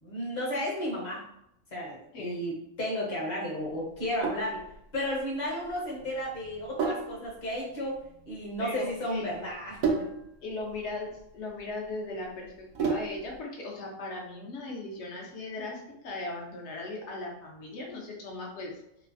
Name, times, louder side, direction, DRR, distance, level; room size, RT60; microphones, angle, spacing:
voice 1, 0.0-1.2 1.7-2.5 2.8-4.6 4.9-8.0 8.3-10.1, equal, 40° left, -5 dB, 0.9 m, -33 dB
Sink (filling or washing), 3.9-13.4, right 4 dB, 85° right, 1.0 m, -35 dB
voice 2, 8.6-9.3 10.4-18.8, left 2 dB, 60° left, -1 dB, 1.0 m, -38 dB
3.1 x 2.0 x 2.5 m, 0.78 s
omnidirectional pair, 1.4 m